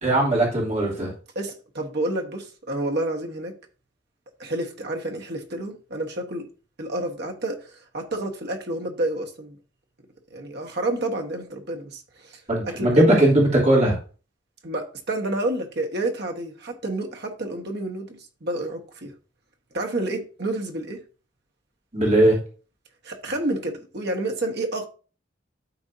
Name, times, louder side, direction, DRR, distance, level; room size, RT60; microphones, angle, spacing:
voice 1, 0.0-1.1 12.5-14.0 21.9-22.4, right 1 dB, 40° right, 3.0 m, -19 dB
voice 2, 1.3-3.5 4.4-6.5 6.8-9.6 10.3-13.1 14.6-19.1 19.7-21.0 23.0-24.9, right 1 dB, 60° right, 1.3 m, -29 dB
12.5 x 4.3 x 2.7 m
head